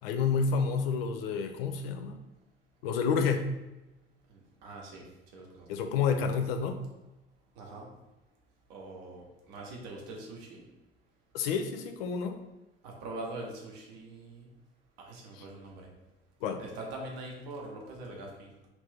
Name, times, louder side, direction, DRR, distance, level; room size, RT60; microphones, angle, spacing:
voice 1, 0.0-2.2 2.8-3.5 5.7-6.8 11.3-12.4 16.4-16.6, left 5 dB, 75° left, 7 dB, 0.5 m, -29 dB
voice 2, 4.3-5.0 5.3-5.7 7.6-7.9 8.7-10.6 12.8-14.5 15.0-15.9 16.6-18.5, right 2 dB, 70° right, -1 dB, 0.9 m, -43 dB
3.0 x 2.6 x 3.4 m, 1.0 s
figure-of-eight pair, 60°, 30 cm